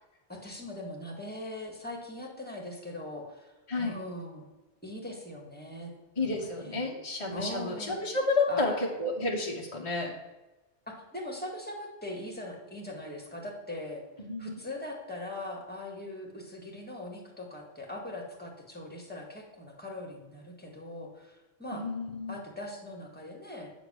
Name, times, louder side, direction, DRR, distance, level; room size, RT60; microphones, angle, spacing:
voice 1, 0.3-3.5 3.8-4.4 4.8-5.9 6.2-6.9 7.3-8.0 8.5-8.8 10.9-14.0 14.4-21.8 22.3-23.7, left 1 dB, 10° left, 0 dB, 1.7 m, -41 dB
voice 2, 6.2-10.1 14.2-14.6 21.7-22.4, left 3 dB, 30° left, -2 dB, 1.2 m, -31 dB
8.6 x 5.1 x 6.2 m, 1.1 s
omnidirectional pair, 1.1 m